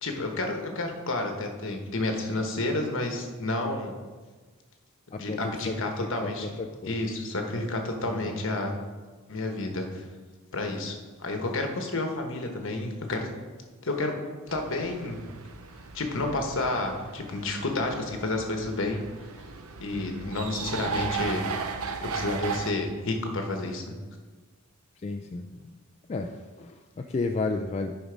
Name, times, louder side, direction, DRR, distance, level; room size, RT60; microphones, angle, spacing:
voice 1, 0.0-3.9 5.2-6.6 6.8-8.8 9.3-10.0 10.5-13.3 13.8-14.1 14.5-15.2 15.9-19.0 19.8-21.4 22.0-23.9, left 2 dB, 60° left, 3 dB, 1.2 m, -30 dB
voice 2, 5.1-7.1 8.1-8.4 19.9-20.3 25.0-25.7 26.1-28.0, left 3 dB, 30° left, 3 dB, 0.3 m, -33 dB
sound 1, 14.5-22.7, right 5 dB, 75° right, 0.7 m, -36 dB
10.0 x 5.2 x 5.1 m, 1.4 s
head